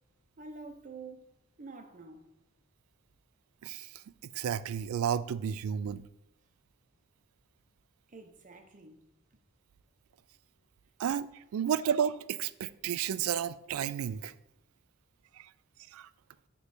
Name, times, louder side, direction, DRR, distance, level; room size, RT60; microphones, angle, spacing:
voice 1, 0.4-1.2 1.6-2.2 8.1-9.0, right 3 dB, 40° right, 0.7 m, -47 dB
voice 2, 3.6-4.0 4.3-6.0 11.0-14.3 15.3-15.5 15.9-16.1, right 8 dB, 85° right, 0.3 m, -32 dB
6.6 x 3.2 x 4.8 m
head